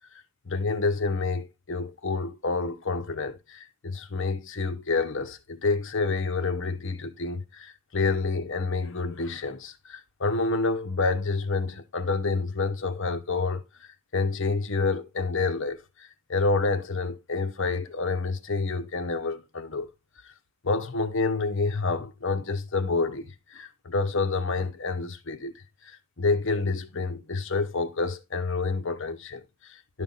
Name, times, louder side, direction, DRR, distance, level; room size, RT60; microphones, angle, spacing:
voice 1, 0.5-19.9 20.6-25.5 25.8-30.0, left 3 dB, 60° left, 0.9 m, -28 dB
11.5 x 5.4 x 4.0 m
head